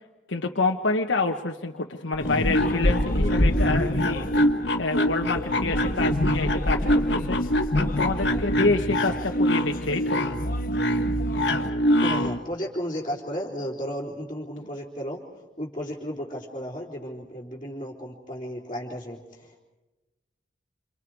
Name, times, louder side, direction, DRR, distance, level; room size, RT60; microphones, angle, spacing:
voice 1, 0.3-4.3 4.8-7.4 7.7-10.3, left 3 dB, 85° left, 2 dB, 1.2 m, -27 dB
sound 1, 2.1-12.4, equal, 65° left, 1.6 m, -24 dB
sound 2, 2.2-11.7, left 2 dB, 45° left, 1.1 m, -32 dB
voice 2, 7.9-8.4 12.0-15.2 15.6-19.6, equal, 25° left, -9 dB, 3.6 m, -34 dB
28.5 x 28.5 x 4.8 m, 1.1 s
head